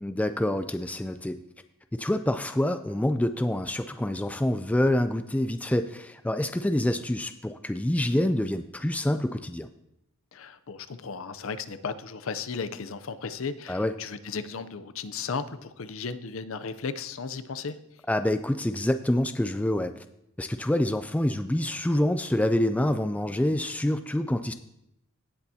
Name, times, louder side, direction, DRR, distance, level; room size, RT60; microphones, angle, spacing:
voice 1, 0.0-1.4 1.9-9.7 13.7-13.9 18.1-19.9 20.4-24.5, left 1 dB, 5° left, 9 dB, 0.3 m, -26 dB
voice 2, 10.3-17.8, left 5 dB, 65° left, 12 dB, 0.6 m, -35 dB
17.5 x 7.1 x 2.8 m, 0.82 s
head